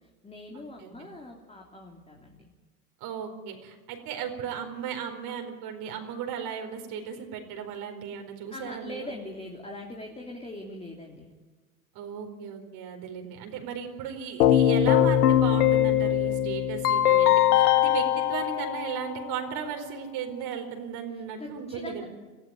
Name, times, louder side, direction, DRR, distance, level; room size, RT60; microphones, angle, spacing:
voice 1, 0.0-2.5 8.5-11.3 21.1-22.0, left 1 dB, 15° left, 0 dB, 3.2 m, -42 dB
voice 2, 0.5-1.1 3.0-9.1 11.9-22.1, right 7 dB, 55° right, 3 dB, 4.6 m, -36 dB
Keyboard (musical), 14.4-19.4, left 11 dB, 80° left, 1.4 m, -22 dB
23.5 x 14.5 x 9.2 m, 1.3 s
hypercardioid pair, 85°, 44 cm